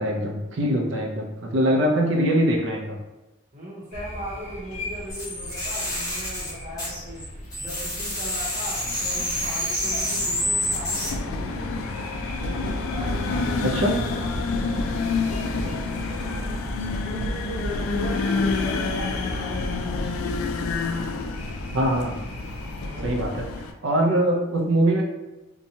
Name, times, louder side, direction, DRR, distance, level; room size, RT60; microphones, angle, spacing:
voice 1, 0.0-3.0 13.7-13.9 21.7-22.2 23.0-23.4 23.8-25.0, right 1 dB, 60° right, 0 dB, 0.5 m, -22 dB
voice 2, 3.5-7.3 7.6-12.0 12.4-16.6 17.0-19.9 22.8-23.2, equal, 40° right, -5 dB, 0.8 m, -39 dB
sound 1, 3.9-23.1, equal, 35° left, 0.5 m, -37 dB
sound 2, 5.1-7.3 7.5-11.1, left 1 dB, 15° left, 1.2 m, -28 dB
sound 3, 8.8-23.7, left 3 dB, 80° left, 0.3 m, -29 dB
2.9 x 2.2 x 2.6 m, 1.1 s
head